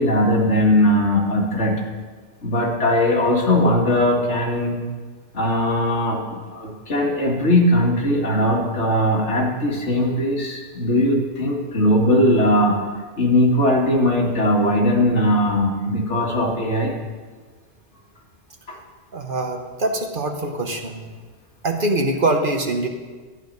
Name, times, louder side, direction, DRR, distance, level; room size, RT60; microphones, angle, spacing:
voice 1, 0.0-1.8 2.4-4.8 5.3-12.8 13.2-16.9 18.7-18.8, left 1 dB, 70° left, -1 dB, 2.1 m, -19 dB
voice 2, 19.1-21.1 21.6-22.9, right 2 dB, 50° right, 4 dB, 1.1 m, -23 dB
12.0 x 10.0 x 5.3 m, 1.4 s
omnidirectional pair, 1.2 m